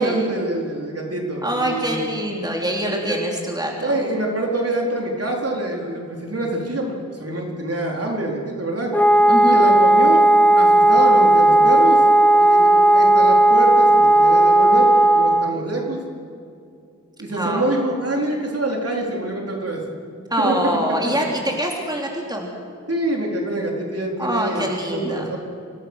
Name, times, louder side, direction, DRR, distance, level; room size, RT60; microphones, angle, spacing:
voice 1, 0.0-2.1 2.8-3.2 3.8-8.9 9.5-10.3 10.6-12.0 12.4-16.0 17.2-19.8 20.4-20.6 22.9-25.4, right 2 dB, 55° right, -1 dB, 4.3 m, -25 dB
voice 2, 1.4-3.9 9.3-9.7 17.3-17.8 20.3-22.5 24.2-25.3, equal, 15° right, 0 dB, 3.3 m, -24 dB
Wind instrument woodwind instrument, 8.9-15.6, right 1 dB, 5° left, 0.6 m, -14 dB
26.0 x 18.5 x 6.5 m, 2.5 s
wide cardioid pair, 90°, 29 cm